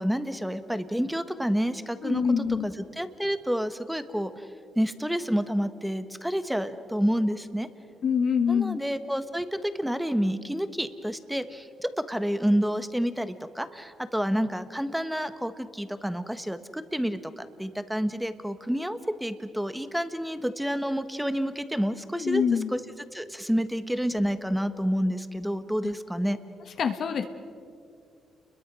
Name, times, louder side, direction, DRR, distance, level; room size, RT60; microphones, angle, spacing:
voice 1, 0.0-2.2 2.6-4.5 4.7-7.7 8.5-22.4 22.7-22.8 23.1-26.4, equal, 5° right, 11 dB, 1.4 m, -29 dB
voice 2, 2.0-2.7 8.0-8.8 22.1-22.7 25.8-25.9 26.8-27.2, left 7 dB, 60° left, 6 dB, 1.4 m, -25 dB
30.0 x 22.0 x 6.3 m, 2.3 s
cardioid pair, 90°, 0 cm